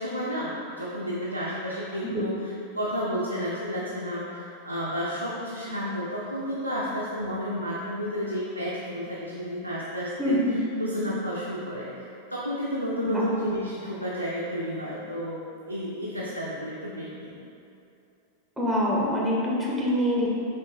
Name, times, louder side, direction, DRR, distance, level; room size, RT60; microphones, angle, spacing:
voice 1, 0.0-10.4 10.8-15.4 15.7-17.3, equal, 90° right, -7 dB, 0.4 m, -31 dB
voice 2, 10.2-10.6 13.1-13.2 18.6-20.3, equal, 5° right, -5 dB, 0.7 m, -25 dB
5.5 x 2.6 x 2.6 m, 2.7 s
figure-of-eight pair, 90°, 0 cm